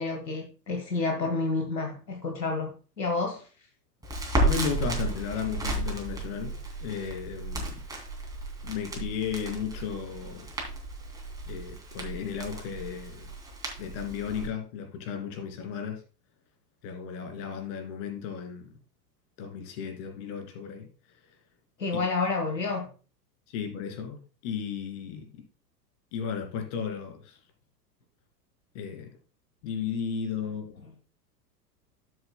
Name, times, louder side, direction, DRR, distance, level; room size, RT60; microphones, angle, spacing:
voice 1, 0.0-3.5 21.8-22.9, left 3 dB, 80° left, 3 dB, 1.6 m, -29 dB
Crackle, 4.0-14.5, right 1 dB, 5° right, 2.4 m, -33 dB
voice 2, 4.4-6.5 6.8-7.7 8.6-10.5 11.5-13.3 13.8-16.0 16.8-18.7 19.4-20.9 23.5-25.2 26.1-27.4 28.7-29.1 29.6-30.7, left 7 dB, 45° left, 4 dB, 2.5 m, -34 dB
12.0 x 7.6 x 2.2 m, 0.36 s
figure-of-eight pair, 95°, 49 cm